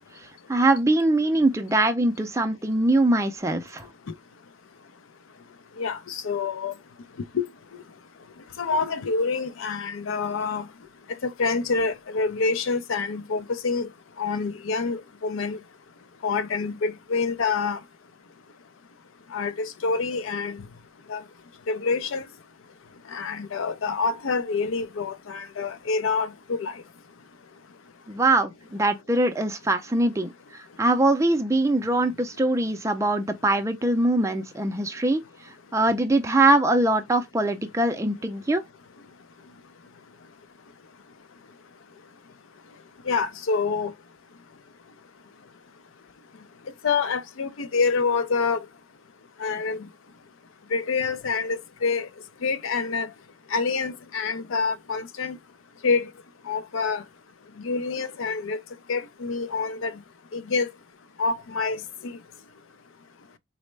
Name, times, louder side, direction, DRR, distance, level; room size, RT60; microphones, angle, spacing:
voice 1, 0.5-3.9 28.1-35.2 35.7-38.6, right 2 dB, 15° right, 0.4 m, -22 dB
voice 2, 5.8-6.7 7.3-7.5 8.6-10.6 11.2-13.9 14.2-15.6 16.2-17.8 19.3-20.6 21.1-21.2 21.7-22.2 23.1-26.7 43.1-43.9 46.8-48.6 49.4-49.8 50.7-52.1 52.4-53.1 53.5-55.4 55.8-56.1 56.5-57.0 57.6-58.6 58.9-59.9 60.3-60.7 61.2-61.8, left 4 dB, 75° left, 0.5 m, -26 dB
4.1 x 2.1 x 3.2 m
head